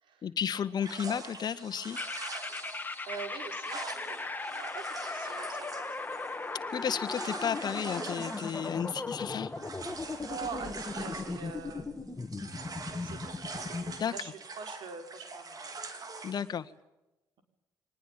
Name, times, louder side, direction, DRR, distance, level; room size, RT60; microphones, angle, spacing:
voice 1, 0.2-2.0 6.7-9.5 14.0-14.1 16.2-16.7, left 8 dB, 50° left, 10 dB, 1.7 m, -33 dB
sound 1, 0.8-11.9 12.2-16.5, right 3 dB, 45° right, 4.8 m, -44 dB
sound 2, 2.0-14.0, left 3 dB, 20° left, 2.5 m, -38 dB
voice 2, 2.6-6.3 7.3-7.4 10.2-12.2 12.7-13.4 14.0-15.8 16.2-16.3, right 5 dB, 65° right, 7 dB, 5.2 m, -45 dB
24.5 x 20.5 x 8.8 m, 0.96 s
hypercardioid pair, 55°, 9 cm